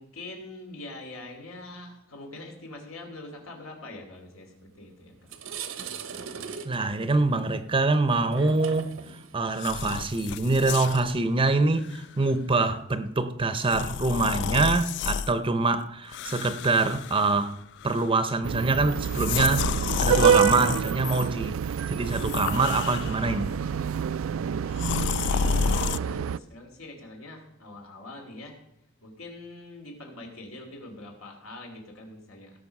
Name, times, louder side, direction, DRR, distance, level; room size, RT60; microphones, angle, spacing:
voice 1, 0.0-5.3 24.8-28.5 29.0-32.6, left 2 dB, 85° left, 2.9 m, -44 dB
sound 1, 4.6-4.8 5.1-12.4, right 6 dB, 85° right, 1.0 m, -41 dB
voice 2, 6.6-8.9 9.3-17.5 17.8-23.6, right 3 dB, 25° right, 0.7 m, -25 dB
sound 2, 9.5-11.1 11.8-12.0 13.6-15.3 16.1-17.5 17.8-18.2 19.0-21.3 22.0-23.4 24.8-26.0, left 7 dB, 60° left, 0.3 m, -30 dB
sound 3, 18.4-26.4, right 8 dB, 70° right, 0.3 m, -27 dB
17.0 x 6.5 x 5.4 m
head